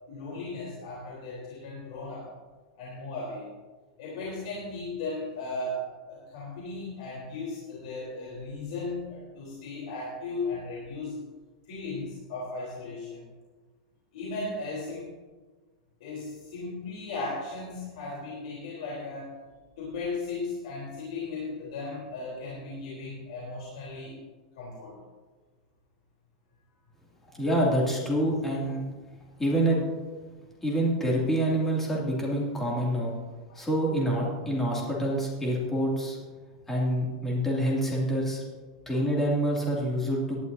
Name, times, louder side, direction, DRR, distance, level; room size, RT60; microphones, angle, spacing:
voice 1, 0.1-2.3 2.8-3.5 4.0-11.3 11.7-13.3 14.1-15.1 16.0-19.3 19.8-24.2 24.6-24.9 33.5-33.6, left 3 dB, 70° left, -5 dB, 3.7 m, -36 dB
voice 2, 27.3-28.9 29.4-29.8 30.6-33.1 33.5-36.2 36.7-38.4 38.9-40.4, right 1 dB, 10° left, -4 dB, 2.5 m, -26 dB
18.0 x 11.0 x 2.7 m, 1.3 s
supercardioid pair, 155°, 4 cm